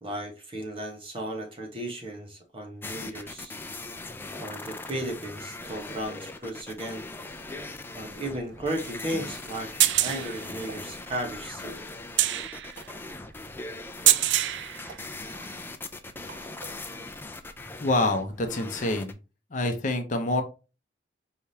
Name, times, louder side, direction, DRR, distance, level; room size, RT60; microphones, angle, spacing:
voice 1, 0.0-3.5 4.4-7.1 7.9-11.8, right 1 dB, 30° right, 1.2 m, -35 dB
sound 1, 2.8-19.1, left 2 dB, 10° left, 0.4 m, -40 dB
sound 2, 7.3-15.6 16.1-16.9 18.2-18.3, right 13 dB, 80° right, 0.3 m, -28 dB
voice 2, 17.8-19.2 19.5-20.4, left 2 dB, 45° left, 0.7 m, -26 dB
4.6 x 3.5 x 2.7 m
head